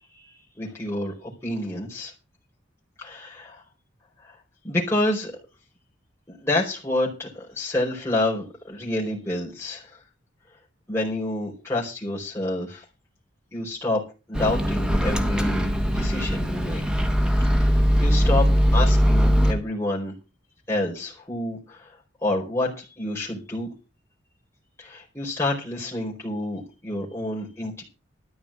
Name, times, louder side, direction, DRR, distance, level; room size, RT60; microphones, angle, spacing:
voice 1, 0.1-2.1 3.0-3.6 4.2-4.4 4.6-5.3 6.3-10.0 10.9-12.8 13.5-14.0 14.3-16.8 17.4-20.1 20.7-23.7 24.8-27.8, left 1 dB, 15° left, -4 dB, 4.6 m, -28 dB
Microwave oven, 14.3-19.5, equal, 5° right, 1.7 m, -20 dB
13.0 x 6.1 x 8.6 m, 0.30 s
head